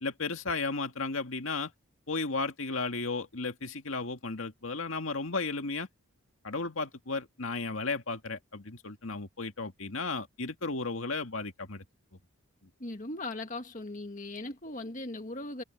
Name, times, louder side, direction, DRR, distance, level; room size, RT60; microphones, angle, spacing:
voice 1, 0.0-1.7 2.1-5.9 6.4-11.8, left 3 dB, 70° left, 2.1 m, -34 dB
voice 2, 12.8-15.6, left 2 dB, 35° left, 1.8 m, -38 dB
head